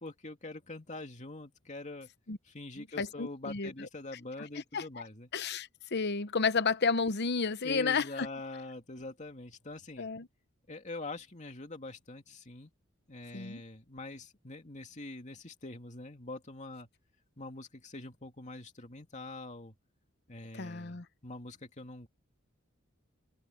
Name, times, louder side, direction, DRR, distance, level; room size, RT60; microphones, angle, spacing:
voice 1, 0.0-2.1 2.4-5.3 7.6-10.1 10.7-12.7 13.1-16.9 17.4-19.7 20.3-22.1, left 2 dB, 35° left, 2.6 m, -44 dB
voice 2, 2.8-3.9 4.7-5.1 5.3-8.3 10.0-10.3 13.3-13.6 20.5-21.0, left 4 dB, 55° left, 0.9 m, -32 dB
head